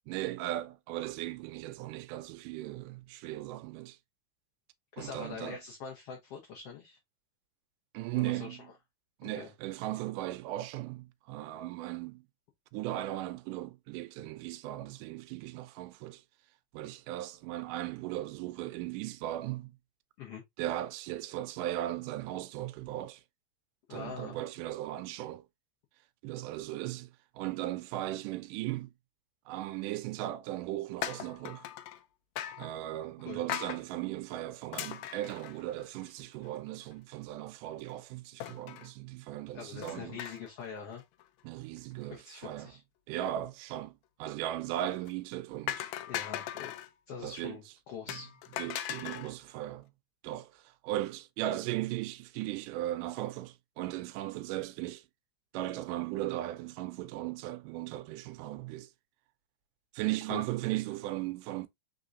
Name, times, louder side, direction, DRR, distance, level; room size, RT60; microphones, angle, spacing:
voice 1, 0.1-4.0 5.0-5.6 7.9-8.7 9.2-12.2 12.7-16.2 16.7-19.8 20.6-23.2 23.9-25.4 26.2-28.9 29.5-31.7 32.6-40.3 41.4-42.7 43.1-45.9 47.2-47.6 48.1-48.2 48.6-49.9 50.2-55.0 55.5-58.9 59.9-61.7, right 14 dB, 85° right, 2.1 m, -37 dB
voice 2, 5.0-7.0 8.1-8.6 9.3-9.5 20.2-20.4 23.9-24.4 33.2-33.4 39.5-41.0 42.1-42.8 46.1-46.7 47.1-48.3 60.3-60.4, left 6 dB, 70° left, 1.5 m, -43 dB
sound 1, 31.0-32.0 32.4-32.7 33.5-33.8 34.7-36.1 36.5-36.6 36.8-36.9 38.4-38.9 39.8-40.6 40.9-41.2 44.8-45.1 45.7-46.9 48.1-49.3, left 12 dB, 90° left, 1.6 m, -39 dB
5.0 x 3.7 x 2.5 m
omnidirectional pair, 3.7 m